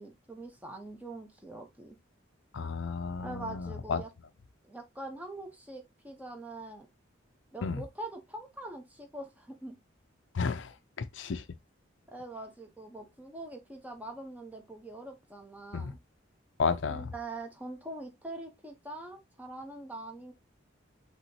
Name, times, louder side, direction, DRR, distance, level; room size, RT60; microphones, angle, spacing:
voice 1, 0.0-2.0 3.2-4.1 4.6-6.9 7.5-9.8 12.1-16.0 16.8-20.3, right 2 dB, 10° right, 1.1 m, -43 dB
voice 2, 2.5-4.0 7.6-7.8 10.3-10.7 11.0-11.4 15.7-15.9 16.6-17.1, left 5 dB, 65° left, 0.5 m, -32 dB
5.9 x 3.1 x 2.9 m
head